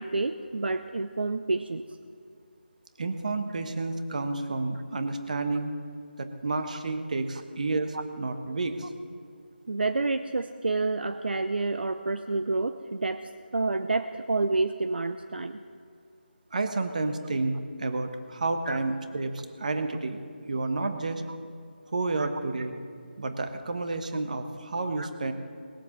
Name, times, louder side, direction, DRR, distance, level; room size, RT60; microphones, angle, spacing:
voice 1, 0.0-1.8 7.9-8.0 9.7-13.2 13.5-15.6 18.7-18.8 22.2-22.3 25.0-25.1, right 3 dB, 65° right, 9 dB, 0.6 m, -29 dB
voice 2, 3.0-5.7 6.2-8.8 16.5-20.2 20.5-21.2 21.9-22.8 23.2-25.3, right 3 dB, 45° right, 7 dB, 1.2 m, -30 dB
19.5 x 7.7 x 7.2 m, 2.3 s
figure-of-eight pair, 170°, 6 cm